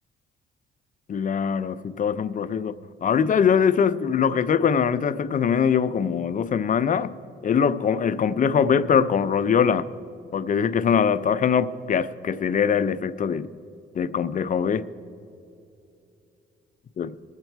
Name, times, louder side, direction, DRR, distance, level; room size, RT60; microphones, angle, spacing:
voice 1, 1.1-2.7 3.0-7.1 7.4-9.9 10.3-13.5 14.0-14.9 17.0-17.1, left 7 dB, 40° left, 0.5 m, -22 dB
22.0 x 8.1 x 4.5 m
cardioid pair, 90°, 20 cm